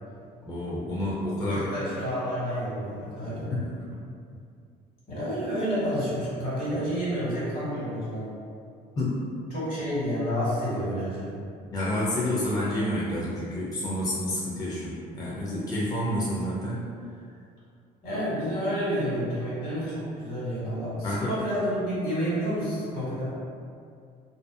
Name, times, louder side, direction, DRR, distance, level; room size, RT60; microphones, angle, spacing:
voice 1, 0.4-1.7 3.5-3.8 9.0-9.2 11.7-16.8 21.0-21.3, left 1 dB, 20° left, -7 dB, 0.4 m, -29 dB
voice 2, 1.5-3.5 5.1-8.3 9.5-11.3 18.0-23.3, equal, 60° left, -9 dB, 1.4 m, -29 dB
2.6 x 2.3 x 2.3 m, 2.3 s
cardioid pair, 110°, 17 cm